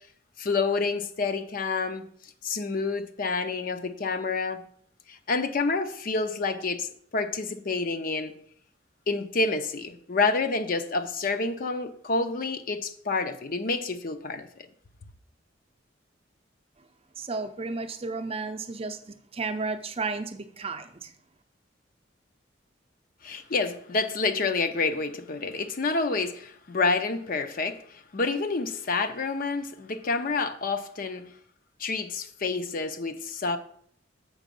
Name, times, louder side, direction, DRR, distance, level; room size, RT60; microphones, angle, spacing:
voice 1, 0.4-2.1 2.4-4.6 5.1-8.3 9.1-14.5 23.2-31.3 31.8-33.6, left 3 dB, 50° left, 0.6 m, -28 dB
voice 2, 17.2-21.1, right 3 dB, 30° right, 0.6 m, -33 dB
7.2 x 5.0 x 5.3 m
head